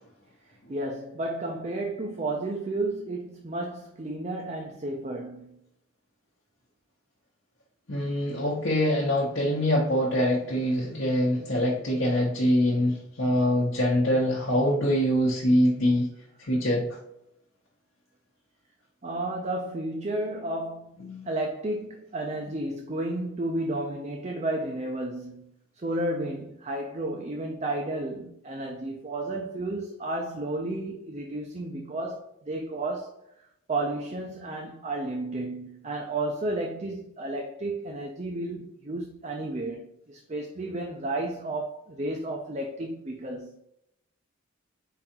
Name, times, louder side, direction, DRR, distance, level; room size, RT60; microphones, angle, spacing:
voice 1, 0.7-5.6 19.0-25.5 25.8-43.6, right 2 dB, 30° right, 0.5 m, -32 dB
voice 2, 7.9-16.1 16.4-16.8 21.0-21.3, equal, 60° left, 1.0 m, -24 dB
4.7 x 3.8 x 2.9 m
head